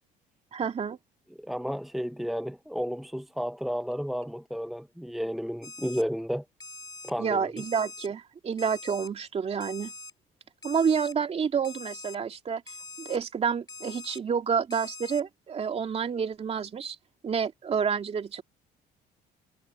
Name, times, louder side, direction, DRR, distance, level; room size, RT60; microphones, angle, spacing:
voice 1, 0.5-1.0 7.2-9.9 10.6-12.6 13.0-17.0 17.2-18.4, right 6 dB, 35° right, 2.8 m, -29 dB
voice 2, 1.4-6.4 7.0-7.5, equal, ahead, 1.0 m, -32 dB
Alarm, 5.6-6.0 6.6-7.1 7.6-8.1 8.6-9.1 9.6-10.1 10.6-11.1 11.6-12.2 12.7-13.2 13.7-14.2 14.7-15.2, left 3 dB, 20° left, 4.0 m, -43 dB
cardioid pair, 110°, 17 cm